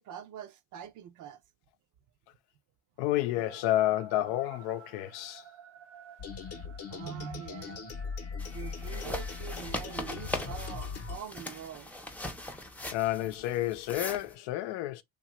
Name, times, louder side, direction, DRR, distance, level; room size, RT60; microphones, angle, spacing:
voice 1, 0.0-1.4 6.9-7.8 8.5-11.9, right 9 dB, 50° right, 0.5 m, -44 dB
voice 2, 3.0-5.4 12.9-15.0, left 14 dB, 75° left, 0.6 m, -30 dB
sound 1, 3.4-12.8, right 8 dB, 75° right, 1.1 m, -55 dB
sound 2, 6.2-11.2, left 6 dB, 40° left, 0.8 m, -39 dB
sound 3, 8.4-14.3, left 1 dB, 5° left, 0.5 m, -40 dB
2.8 x 2.3 x 3.0 m
supercardioid pair, 95°, 40 cm